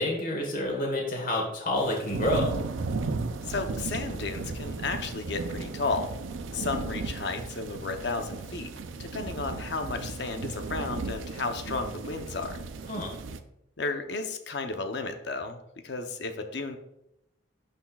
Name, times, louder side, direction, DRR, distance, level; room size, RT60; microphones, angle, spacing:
voice 1, 0.0-2.5 12.9-13.1, left 1 dB, 45° left, 0 dB, 1.3 m, -28 dB
sound 1, 1.8-13.4, right 3 dB, 90° right, 0.5 m, -35 dB
voice 2, 3.4-6.1 6.5-8.7 9.0-12.6 13.8-16.8, left 3 dB, 65° left, 6 dB, 0.7 m, -33 dB
11.5 x 4.3 x 2.3 m, 0.83 s
head